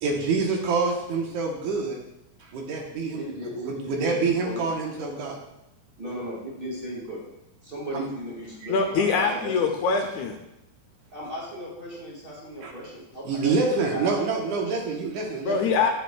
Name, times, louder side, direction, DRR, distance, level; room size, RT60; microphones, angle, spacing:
voice 1, 0.0-2.0 2.4-3.3 3.5-5.4 7.9-8.1 12.6-12.7 13.3-15.7, right 4 dB, 75° right, 0 dB, 2.3 m, -26 dB
voice 2, 3.1-4.6 6.0-7.2 7.6-9.6 11.1-14.6, equal, 25° right, -4 dB, 1.4 m, -36 dB
voice 3, 8.7-10.4 15.4-15.9, left 5 dB, 80° left, 3 dB, 1.9 m, -23 dB
9.6 x 6.7 x 2.2 m, 0.88 s
omnidirectional pair, 3.7 m